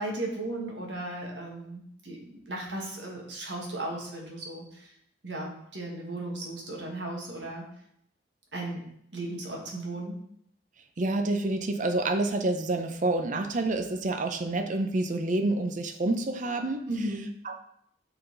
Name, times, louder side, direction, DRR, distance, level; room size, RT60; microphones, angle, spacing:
voice 1, 0.0-2.2 2.5-4.9 5.2-7.7 8.5-8.9 9.1-10.1 16.9-17.3, right 1 dB, 65° right, -1 dB, 1.6 m, -35 dB
voice 2, 11.0-16.9 17.4-17.5, right 2 dB, 40° right, 6 dB, 0.6 m, -28 dB
7.9 x 3.9 x 3.9 m, 0.72 s
head